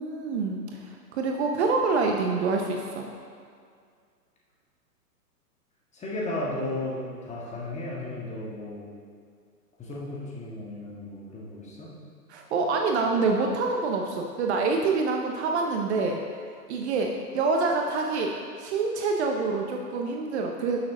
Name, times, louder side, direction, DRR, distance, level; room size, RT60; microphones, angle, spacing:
voice 1, 0.0-3.1 12.3-16.2 16.7-18.3 18.6-20.9, right 4 dB, 40° right, 2 dB, 0.9 m, -26 dB
voice 2, 5.9-8.9 9.8-11.9, left 2 dB, 15° left, -5 dB, 1.8 m, -34 dB
12.0 x 6.6 x 3.8 m, 2.2 s
hypercardioid pair, 125°, 49 cm